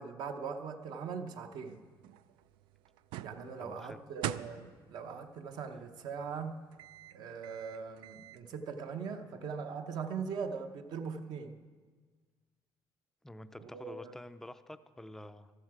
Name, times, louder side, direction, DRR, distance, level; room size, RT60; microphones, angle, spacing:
voice 1, 0.0-1.8 3.2-6.6 7.1-11.6 13.6-14.1, right 5 dB, 55° right, 7 dB, 0.9 m, -40 dB
sound 1, 1.6-8.4, right 13 dB, 90° right, 0.4 m, -46 dB
voice 2, 3.6-4.0 13.2-15.5, left 1 dB, 5° left, 11 dB, 0.4 m, -48 dB
13.5 x 13.0 x 4.8 m, 1.5 s
cardioid pair, 160°, 8 cm